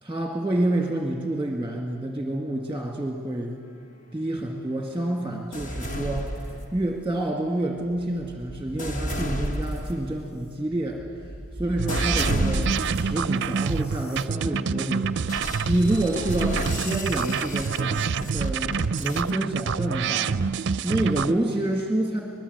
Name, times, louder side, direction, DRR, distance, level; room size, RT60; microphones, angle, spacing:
voice 1, 0.0-3.7 4.1-11.0 11.6-15.3 15.7-20.4 20.8-22.2, right 1 dB, 5° right, 1 dB, 1.9 m, -28 dB
sound 1, 5.5-7.1 7.8-13.3 13.9-14.2 15.3-19.3, equal, 35° left, 1.3 m, -32 dB
sound 2, 11.8-21.3, right 6 dB, 55° right, 0.5 m, -27 dB
25.0 x 20.5 x 8.1 m, 2.4 s
head